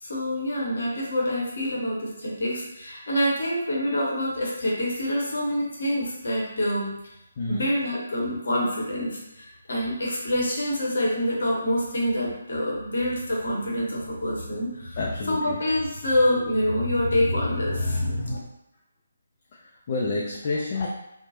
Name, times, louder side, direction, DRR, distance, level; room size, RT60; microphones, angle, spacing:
voice 1, 0.0-6.9 7.5-15.0 15.3-18.4, left 1 dB, 55° left, -3 dB, 0.8 m, -26 dB
voice 2, 7.4-7.7 15.0-15.6 19.5-20.9, left 3 dB, 35° left, -4 dB, 0.4 m, -29 dB
3.0 x 2.1 x 2.6 m, 0.86 s
figure-of-eight pair, 145°, 0 cm